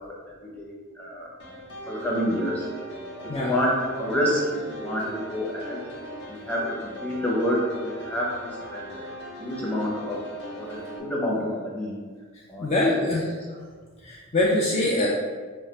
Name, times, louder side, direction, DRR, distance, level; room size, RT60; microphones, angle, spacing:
voice 1, 0.0-1.6 1.9-2.7 3.2-5.9 6.3-9.0 9.4-10.3 10.5-12.0 12.5-12.7, equal, 5° left, -5 dB, 0.7 m, -28 dB
sound 1, 1.4-11.0, right 1 dB, 55° left, 0.8 m, -39 dB
voice 2, 12.6-13.3 14.0-15.1, left 1 dB, 35° left, -4 dB, 0.4 m, -23 dB
4.2 x 2.3 x 3.2 m, 1.5 s
head